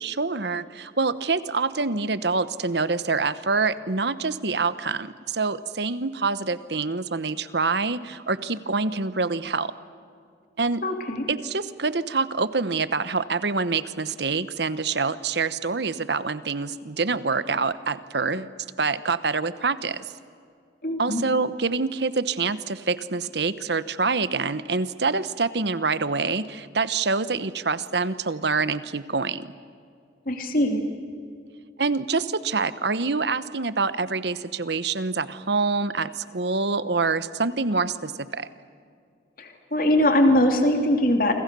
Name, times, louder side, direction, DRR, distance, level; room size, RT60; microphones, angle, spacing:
voice 1, 0.0-9.7 10.6-10.8 11.3-20.0 21.0-29.5 31.8-38.5, right 4 dB, 65° right, 14 dB, 1.1 m, -26 dB
voice 2, 10.8-11.2 20.8-21.2 30.3-30.8 39.4-41.3, left 1 dB, 50° left, 4 dB, 2.8 m, -21 dB
28.5 x 25.5 x 6.9 m, 2.3 s
head